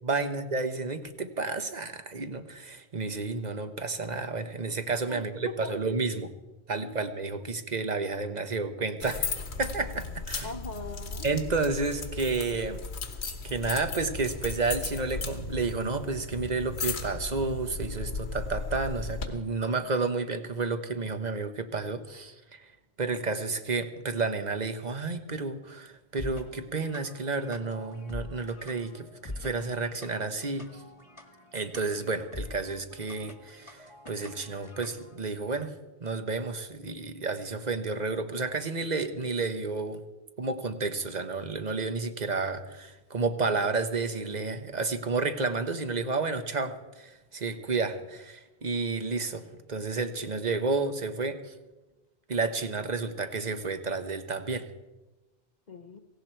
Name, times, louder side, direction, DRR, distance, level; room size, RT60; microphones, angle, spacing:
voice 1, 0.0-6.3 6.7-10.5 11.2-12.8 13.4-22.7 23.0-30.7 31.5-35.7 36.0-40.0 40.4-51.5 52.3-54.6, right 3 dB, 45° right, 9 dB, 1.2 m, -31 dB
voice 2, 5.1-5.8 6.7-7.0 10.4-11.3 55.7-56.0, left 3 dB, 45° left, 7 dB, 0.9 m, -41 dB
sound 1, 9.0-19.3, left 4 dB, 85° left, 1.6 m, -36 dB
sound 2, 26.1-35.2, left 2 dB, 30° left, 1.4 m, -45 dB
17.5 x 16.5 x 4.6 m, 1.1 s
omnidirectional pair, 1.1 m